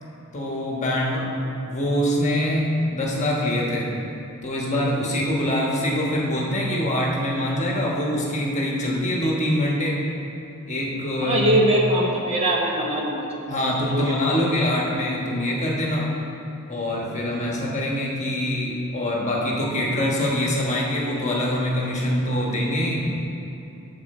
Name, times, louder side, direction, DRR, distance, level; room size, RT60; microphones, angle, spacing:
voice 1, 0.3-1.3 1.6-3.9 4.4-10.0 10.7-11.5 13.5-16.1 16.7-23.1, left 1 dB, 35° left, -3 dB, 1.3 m, -24 dB
voice 2, 11.2-14.4, right 1 dB, 25° right, -2 dB, 1.0 m, -23 dB
8.5 x 4.6 x 6.9 m, 2.9 s
head